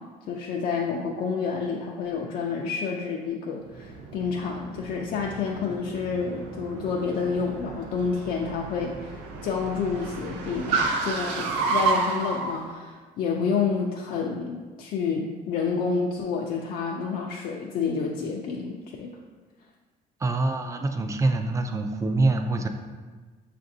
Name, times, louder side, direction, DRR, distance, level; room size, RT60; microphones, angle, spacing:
voice 1, 0.0-19.1, left 5 dB, 60° left, -1 dB, 0.4 m, -29 dB
Car, 3.7-12.6, right 4 dB, 90° right, 0.5 m, -31 dB
voice 2, 20.2-22.7, right 2 dB, 20° right, 6 dB, 0.3 m, -25 dB
5.7 x 2.5 x 2.6 m, 1.4 s
cardioid pair, 110°, 17 cm